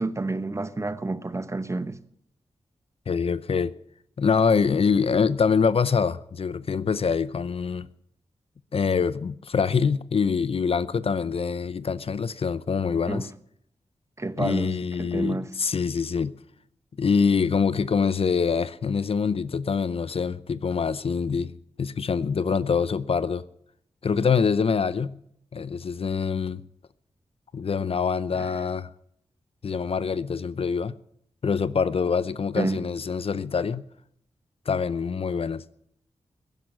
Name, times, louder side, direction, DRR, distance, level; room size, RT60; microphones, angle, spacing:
voice 1, 0.0-2.0 13.1-13.2 14.2-15.5 32.6-32.8, right 2 dB, 25° right, 1.1 m, -29 dB
voice 2, 3.1-3.8 4.2-7.9 8.7-13.3 14.4-16.4 17.0-23.5 24.0-25.2 25.5-26.6 27.5-28.9 29.6-31.0 31.4-33.9 34.7-35.6, left 5 dB, 55° left, 0.6 m, -25 dB
15.5 x 10.5 x 7.4 m
cardioid pair, 65°, 11 cm